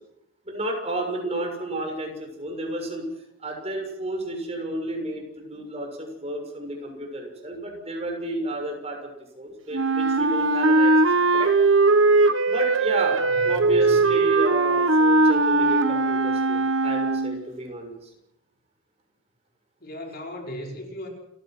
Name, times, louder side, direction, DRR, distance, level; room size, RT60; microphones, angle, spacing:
voice 1, 0.4-3.1 3.4-9.0 9.3-11.5 12.4-13.2 13.4-18.1, right 1 dB, 30° right, 2 dB, 6.6 m, -32 dB
Wind instrument woodwind instrument, 9.7-17.4, right 3 dB, 80° right, 1.3 m, -20 dB
voice 2, 13.3-13.9 19.8-21.1, left 1 dB, 50° left, 1 dB, 5.1 m, -37 dB
29.5 x 15.5 x 6.2 m, 0.84 s
head